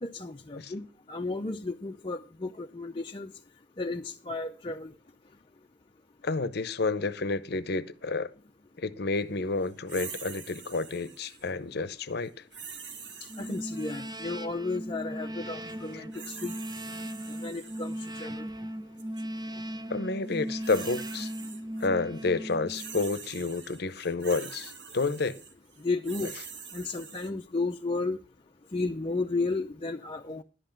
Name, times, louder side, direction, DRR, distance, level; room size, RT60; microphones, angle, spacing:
voice 1, 0.0-3.3 3.8-4.9 13.4-16.6 17.4-18.5 25.8-26.3 26.7-28.2 28.7-30.4, left 3 dB, 30° left, 0.6 m, -33 dB
voice 2, 6.2-8.3 8.8-12.3 19.9-21.3 21.8-25.4, left 3 dB, 60° left, 0.8 m, -30 dB
sound 1, 9.9-11.5 12.5-14.4 15.8-18.3 19.0-19.2 20.3-21.9 22.2-27.3, right 6 dB, 80° right, 1.5 m, -45 dB
sound 2, 13.3-23.2, equal, 25° right, 0.7 m, -38 dB
11.0 x 7.8 x 5.9 m
head